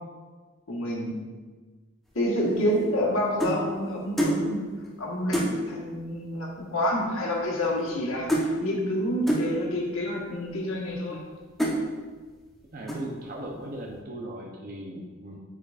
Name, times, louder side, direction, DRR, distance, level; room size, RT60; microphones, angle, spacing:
voice 1, 0.7-1.2 2.1-4.6 5.0-11.2, equal, 85° left, -3 dB, 1.5 m, -28 dB
sound 1, 2.5-3.6 4.2-4.4 4.8-4.9 5.3-5.6 6.5-6.6 6.8-7.1 7.3-8.0 8.3-8.5 9.3-9.5 10.2-10.3 10.9-11.2 11.6-11.8 12.3-12.6 12.9-13.2, right 1 dB, ahead, 0.9 m, -27 dB
voice 2, 12.7-15.4, right 1 dB, 45° right, -1 dB, 0.7 m, -38 dB
9.0 x 4.9 x 2.5 m, 1.4 s
head